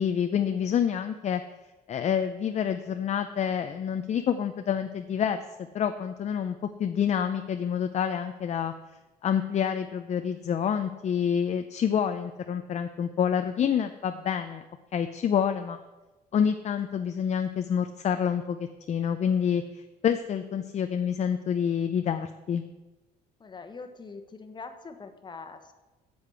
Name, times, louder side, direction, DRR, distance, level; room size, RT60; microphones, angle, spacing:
voice 1, 0.0-1.4 1.9-8.7 9.2-14.6 14.9-15.8 16.3-18.6 18.9-22.6, left 8 dB, 40° left, 8 dB, 0.6 m, -27 dB
voice 2, 23.4-25.7, left 4 dB, 25° left, 7 dB, 1.2 m, -43 dB
8.2 x 7.9 x 7.0 m, 1.1 s
cardioid pair, 110°, 17 cm